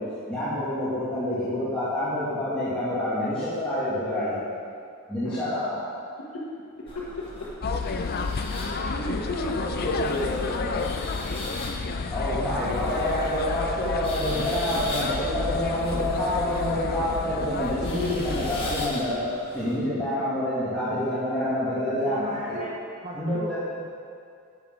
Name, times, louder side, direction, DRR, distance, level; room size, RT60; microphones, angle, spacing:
voice 1, 0.0-4.4 5.1-5.9 12.1-19.3 19.5-22.6 23.1-23.6, left 1 dB, 5° left, -14 dB, 2.2 m, -27 dB
sound 1, 6.9-19.8, left 1 dB, 25° left, 1.6 m, -40 dB
sound 2, 7.6-18.9, left 4 dB, 45° left, 0.5 m, -31 dB
voice 2, 8.8-10.9, left 1 dB, 85° left, -5 dB, 1.4 m, -31 dB
voice 3, 22.0-22.8 23.0-23.9, right 1 dB, 35° right, -4 dB, 0.8 m, -36 dB
11.0 x 7.3 x 3.8 m, 2.3 s
head